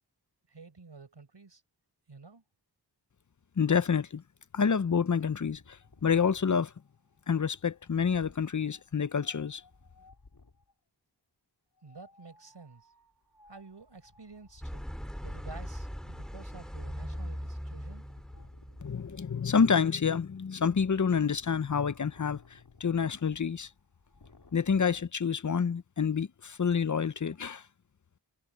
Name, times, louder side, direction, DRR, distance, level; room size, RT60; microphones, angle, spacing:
voice 1, 0.5-1.6 2.1-2.4 11.8-12.9 13.5-14.9 15.2-18.1, right 4 dB, 75° right, 4.9 m, -50 dB
voice 2, 3.6-4.2 4.5-5.8 6.0-6.7 7.3-9.6 18.8-23.7 24.5-27.6, left 6 dB, 45° left, 0.7 m, -28 dB
Wind, 5.4-10.7 11.8-25.0, left 3 dB, 60° left, 3.3 m, -59 dB
sound 1, 14.6-19.6, equal, ahead, 2.0 m, -40 dB
wide cardioid pair, 60°, 43 cm